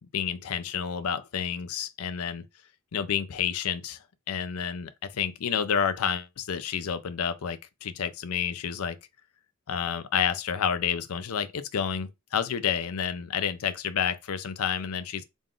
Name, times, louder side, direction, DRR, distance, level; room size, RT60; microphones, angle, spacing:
voice 1, 0.1-2.4 2.9-4.0 4.3-9.0 9.7-15.2, left 7 dB, 90° left, 0.5 m, -29 dB
3.5 x 2.4 x 3.7 m
head